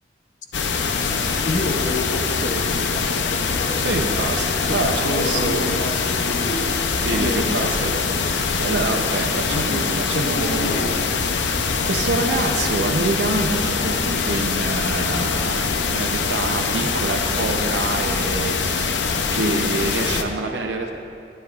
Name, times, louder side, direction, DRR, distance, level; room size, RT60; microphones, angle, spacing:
sound 1, 0.5-20.2, left 5 dB, 90° left, 0.6 m, -23 dB
voice 1, 1.0-4.3 4.7-6.7 7.1-7.8 9.5-9.9 10.1-10.9 15.0-15.3, left 2 dB, 45° left, 4 dB, 0.7 m, -29 dB
voice 2, 3.8-5.7 7.0-11.0 11.6-20.9, right 3 dB, 80° right, 2 dB, 0.6 m, -26 dB
14.5 x 9.3 x 2.4 m, 2.6 s
head